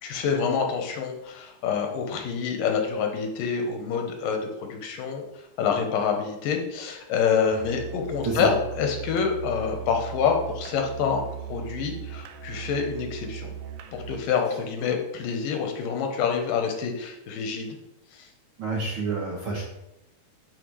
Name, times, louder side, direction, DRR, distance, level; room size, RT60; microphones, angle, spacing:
voice 1, 0.0-5.2 5.6-13.5 13.9-17.8 18.1-18.3, left 6 dB, 85° left, 3 dB, 2.7 m, -27 dB
Musical instrument, 7.5-14.3, right 9 dB, 80° right, 2.2 m, -38 dB
voice 2, 18.6-19.6, right 3 dB, 65° right, -3 dB, 1.3 m, -28 dB
12.0 x 4.3 x 3.2 m, 0.89 s
omnidirectional pair, 3.9 m